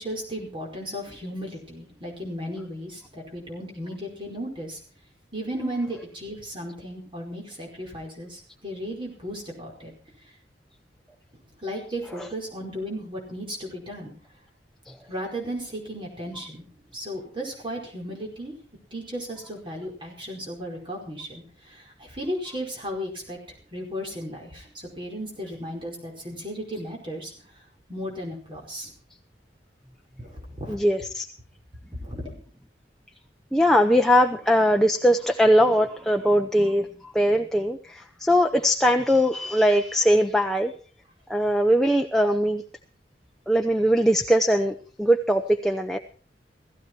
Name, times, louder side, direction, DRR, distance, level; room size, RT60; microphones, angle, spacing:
voice 1, 0.0-4.8 5.3-9.9 11.3-14.1 15.1-16.6 16.9-18.5 18.9-23.4 23.7-27.3 27.9-28.9 30.2-30.8 32.0-32.3, equal, 30° right, -1 dB, 4.9 m, -35 dB
voice 2, 30.7-31.3 33.5-40.7 41.3-42.6 43.5-46.0, equal, ahead, 2 dB, 0.8 m, -21 dB
16.0 x 16.0 x 4.6 m, 0.42 s
head